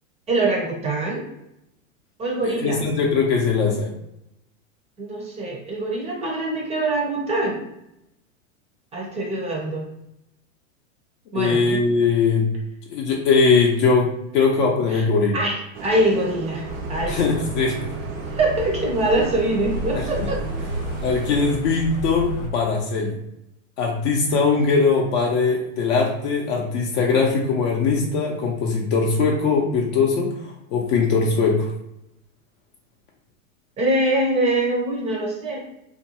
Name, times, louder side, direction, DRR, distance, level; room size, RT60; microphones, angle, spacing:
voice 1, 0.3-1.3 2.2-2.8 5.0-7.6 8.9-9.9 11.3-11.8 14.9-15.1 15.3-16.6 16.9-17.2 18.3-20.4 33.8-35.6, right 2 dB, 15° right, -2 dB, 0.5 m, -23 dB
voice 2, 2.4-3.9 11.3-12.5 12.9-15.4 17.1-17.8 19.9-20.3 21.0-23.2 23.8-31.7, left 4 dB, 55° left, -1 dB, 0.6 m, -21 dB
Bus, 15.7-21.6, right 6 dB, 65° right, 0.5 m, -35 dB
sound 1, 16.7-22.5, equal, 90° left, 0.7 m, -32 dB
2.5 x 2.2 x 2.8 m, 0.83 s
hypercardioid pair, 125°, 41 cm